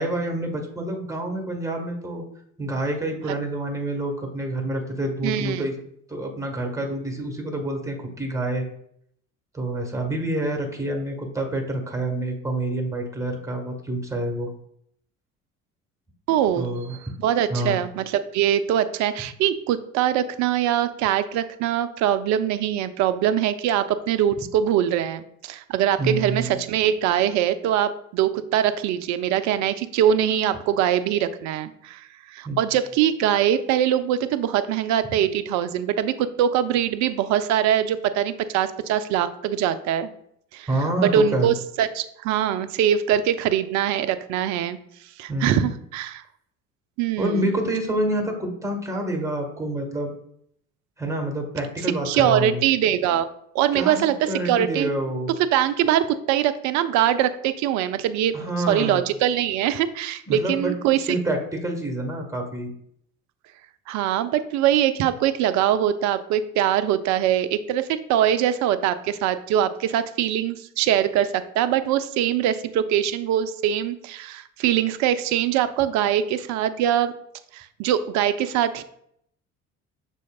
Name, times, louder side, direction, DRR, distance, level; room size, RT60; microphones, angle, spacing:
voice 1, 0.0-2.2 2.6-5.7 6.1-8.6 9.5-14.5 16.6-17.0 17.5-17.8 26.0-26.6 32.4-32.6 40.7-41.5 45.3-45.7 47.2-50.1 51.0-52.7 53.7-54.0 54.3-55.3 58.3-59.0 60.3-60.7 61.1-62.7, right 1 dB, 10° right, 2 dB, 1.3 m, -27 dB
voice 2, 5.2-5.6 16.3-40.1 40.5-40.7 41.0-44.8 45.2-46.2 47.0-47.5 52.1-53.3 53.5-54.9 55.4-61.2 63.9-77.1 77.5-78.8, right 10 dB, 45° right, 12 dB, 0.5 m, -23 dB
6.2 x 3.4 x 2.3 m, 0.70 s
figure-of-eight pair, 55°, 39 cm